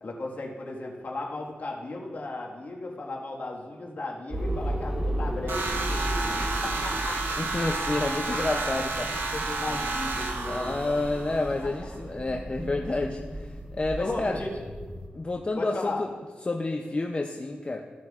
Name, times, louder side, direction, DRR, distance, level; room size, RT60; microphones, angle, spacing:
voice 1, 0.0-7.8 8.3-8.4 9.3-10.8 11.6-11.7 14.0-14.5 15.6-16.0, left 2 dB, 50° left, -1 dB, 1.7 m, -36 dB
sound 1, 4.3-15.1, right 1 dB, 20° right, 1.3 m, -35 dB
sound 2, 5.5-11.6, right 3 dB, 75° right, 1.0 m, -31 dB
voice 2, 7.4-9.3 10.4-14.4 15.1-16.1 16.4-17.8, left 2 dB, 30° left, 2 dB, 0.5 m, -30 dB
14.5 x 7.5 x 2.5 m, 1.4 s
wide cardioid pair, 90°, 4 cm